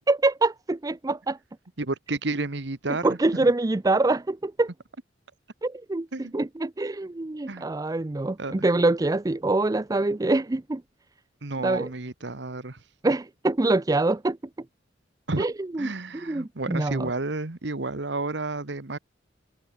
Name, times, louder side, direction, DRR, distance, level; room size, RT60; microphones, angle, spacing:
voice 1, 0.1-1.4 3.0-4.7 5.6-6.1 6.3-10.8 11.6-11.9 13.0-14.4 15.4-15.9 16.3-17.1, right 2 dB, 20° right, 0.5 m, -25 dB
voice 2, 1.8-3.5 6.1-6.3 7.5-7.7 8.4-8.7 11.4-12.8 15.3-15.5 15.8-19.0, right 2 dB, 65° right, 1.4 m, -31 dB
head